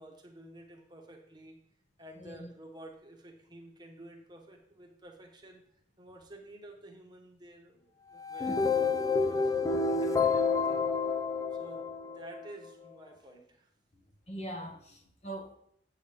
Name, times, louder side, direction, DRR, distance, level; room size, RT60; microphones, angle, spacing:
voice 1, 0.0-1.6 2.0-5.6 6.0-8.6 9.2-10.9 11.6-13.7, right 1 dB, 25° right, 2 dB, 1.1 m, -50 dB
voice 2, 2.2-2.5 8.5-8.6 14.3-15.5, right 1 dB, 35° left, 3 dB, 1.1 m, -42 dB
sound 1, 8.2-12.5, left 4 dB, 20° left, 0.4 m, -29 dB
8.2 x 7.9 x 3.5 m, 0.68 s
head